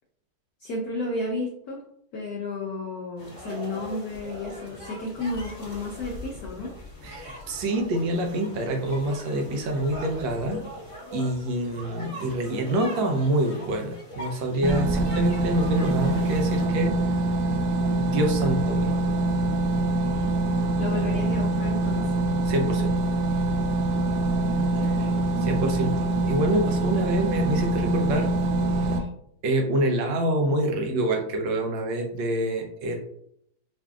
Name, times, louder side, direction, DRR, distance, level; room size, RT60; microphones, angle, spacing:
voice 1, 0.6-1.8 2.1-6.7 20.8-22.0 24.7-25.1, left 2 dB, 75° left, -2 dB, 0.8 m, -32 dB
sound 1, 3.2-16.7, left 1 dB, 20° left, 0.9 m, -41 dB
voice 2, 7.0-10.6 11.1-17.0 17.9-18.9 20.0-20.3 22.4-22.9 25.4-28.3 28.8-28.9 29.4-33.0, right 1 dB, 70° right, 3 dB, 1.3 m, -26 dB
sound 2, 14.6-29.0, right 2 dB, 85° right, 1.5 m, -24 dB
5.0 x 2.6 x 2.3 m, 0.72 s
omnidirectional pair, 2.4 m